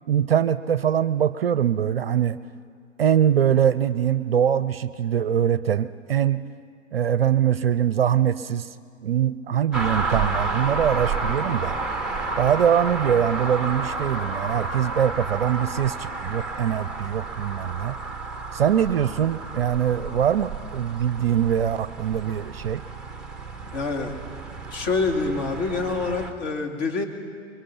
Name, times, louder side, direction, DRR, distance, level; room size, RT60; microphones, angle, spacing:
voice 1, 0.1-2.4 3.0-6.4 6.9-8.7 9.0-11.8 12.4-18.0 18.5-22.8, right 9 dB, 50° right, 15 dB, 0.6 m, -23 dB
sound 1, 9.7-26.3, right 3 dB, ahead, 0.9 m, -31 dB
voice 2, 23.7-24.1 24.7-27.0, left 4 dB, 35° left, 2 dB, 2.8 m, -26 dB
24.5 x 22.5 x 5.8 m, 2.1 s
figure-of-eight pair, 115°, 38 cm